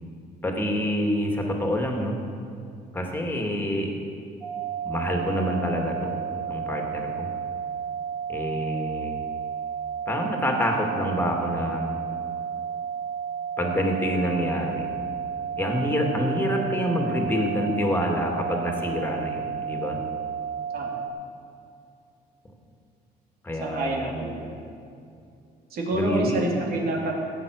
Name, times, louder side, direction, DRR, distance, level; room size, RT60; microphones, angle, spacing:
voice 1, 0.4-2.2 2.9-3.9 4.8-6.1 6.5-7.3 8.3-9.2 10.1-11.9 13.6-14.9 15.6-20.0 23.4-24.1 25.9-26.4, equal, 10° left, 1 dB, 2.3 m, -27 dB
sound 1, 4.4-21.1, right 7 dB, 30° right, 2.4 m, -32 dB
voice 2, 23.6-24.6 25.7-27.1, right 1 dB, 65° right, -1 dB, 3.0 m, -28 dB
15.5 x 8.5 x 6.5 m, 2.5 s
cardioid pair, 110°, 17 cm